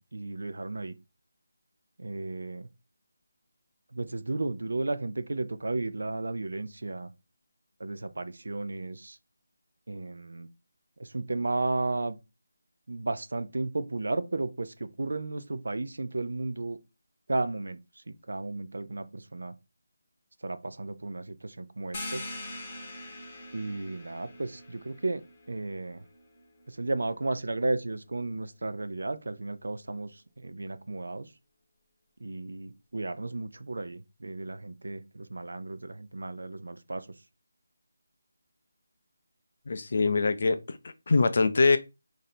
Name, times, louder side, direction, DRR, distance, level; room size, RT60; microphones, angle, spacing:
voice 1, 0.1-0.9 2.0-2.7 3.9-7.1 7.8-9.2 9.9-10.5 11.0-12.2 12.9-16.8 17.3-17.8 18.1-19.5 20.4-22.3 23.5-25.2 25.5-26.0 26.7-31.3 32.2-37.1, right 2 dB, 70° right, 0.5 m, -34 dB
sound 1, 21.9-27.3, left 1 dB, 15° left, 0.7 m, -43 dB
voice 2, 39.7-40.8 41.1-41.8, left 3 dB, 40° left, 0.4 m, -23 dB
3.2 x 2.6 x 4.1 m
figure-of-eight pair, 180°, 0 cm